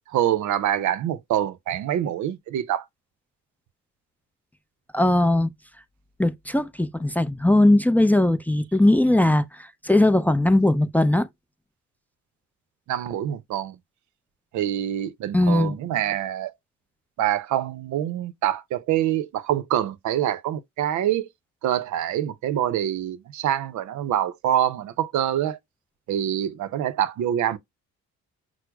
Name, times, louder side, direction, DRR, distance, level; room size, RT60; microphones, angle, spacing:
voice 1, 0.1-2.8 12.9-13.8 14.5-16.5 17.2-21.3 21.6-25.6 26.1-27.6, right 11 dB, 70° right, 0.6 m, -25 dB
voice 2, 4.9-5.5 6.2-11.3 15.3-15.8, left 1 dB, 5° left, 0.4 m, -19 dB
5.9 x 2.0 x 2.2 m
cardioid pair, 90°, 30 cm